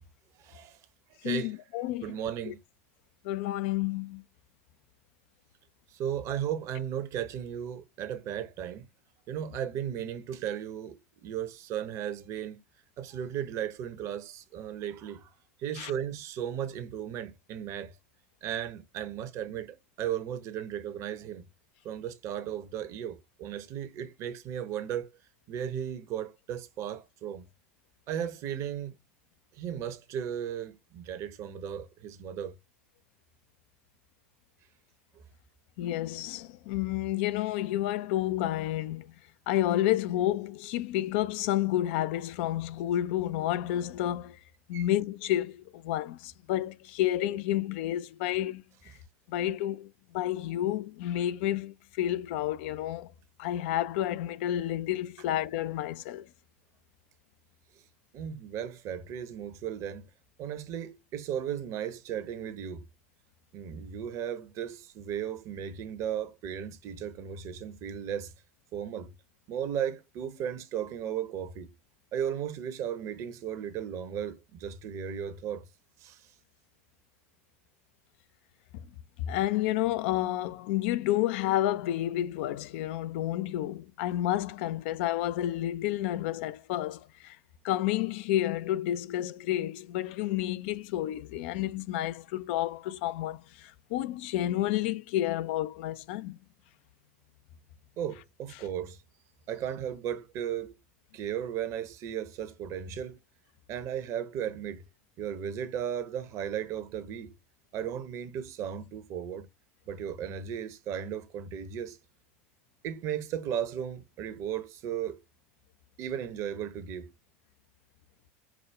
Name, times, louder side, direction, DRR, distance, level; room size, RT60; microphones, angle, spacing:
voice 1, 0.4-0.8 1.2-1.6 1.8-2.6 5.9-8.9 9.3-12.6 13.0-15.3 15.6-17.9 18.4-21.4 21.8-25.2 25.5-27.4 28.1-28.9 29.5-32.6 44.7-44.9 58.1-60.1 60.4-62.9 63.5-68.3 68.7-69.1 69.5-71.7 72.1-75.7 76.0-76.2 98.0-99.0 99.5-100.7 101.1-103.2 103.7-104.8 105.2-107.3 107.7-109.5 109.9-112.0 112.8-115.2 116.0-117.1, right 9 dB, 45° right, 0.8 m, -35 dB
voice 2, 1.2-2.1 2.4-2.5 3.2-4.2 15.8-15.9 35.8-39.1 39.5-44.4 44.7-48.9 49.3-53.1 53.4-56.3 78.7-78.8 79.3-87.4 87.6-96.4, left 13 dB, 55° left, 0.3 m, -30 dB
4.9 x 2.1 x 4.3 m
figure-of-eight pair, 80°, 7 cm